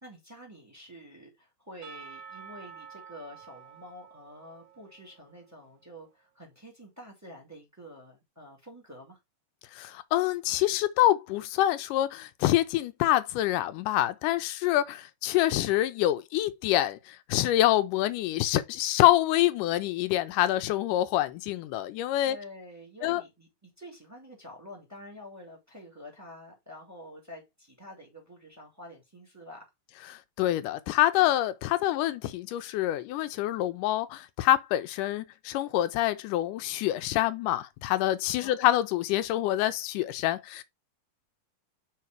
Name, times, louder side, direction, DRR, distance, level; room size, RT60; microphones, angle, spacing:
voice 1, 0.0-9.2 22.2-29.7 38.4-38.6, equal, 5° right, 2.4 m, -48 dB
Percussion / Church bell, 1.8-5.7, right 6 dB, 75° right, 1.0 m, -49 dB
voice 2, 9.7-22.4 23.0-23.2 30.4-40.6, left 14 dB, 85° left, 2.1 m, -26 dB
5.7 x 4.6 x 4.5 m
omnidirectional pair, 3.7 m